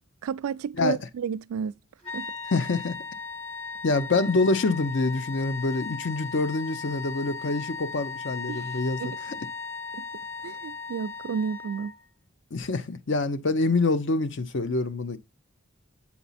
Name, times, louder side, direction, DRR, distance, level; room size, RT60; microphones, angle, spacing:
voice 1, 0.2-1.8 2.1-2.3 8.5-8.7 9.0-9.2 9.9-10.1 10.4-11.9, right 7 dB, 80° right, 0.3 m, -32 dB
sound 1, 2.0-12.0, left 4 dB, 25° left, 1.5 m, -37 dB
voice 2, 2.5-3.0 3.8-9.1 12.5-15.2, left 3 dB, 55° left, 0.6 m, -26 dB
8.2 x 4.3 x 4.1 m
head